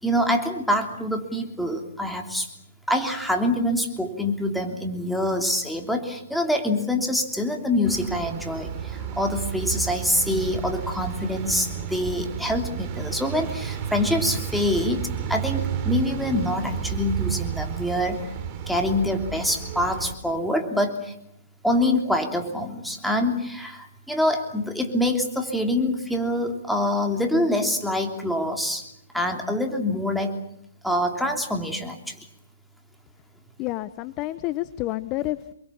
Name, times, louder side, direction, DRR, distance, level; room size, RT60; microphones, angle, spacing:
voice 1, 0.0-2.5 2.9-15.0 15.3-18.3 18.7-21.1 21.6-28.8 29.1-30.4 30.8-32.2, left 1 dB, ahead, 3 dB, 3.1 m, -25 dB
sound 1, 7.8-20.1, right 7 dB, 30° right, 4.3 m, -31 dB
voice 2, 33.6-35.5, left 17 dB, 30° left, 14 dB, 1.0 m, -29 dB
27.5 x 24.0 x 7.3 m, 0.75 s
hypercardioid pair, 145°, 0 cm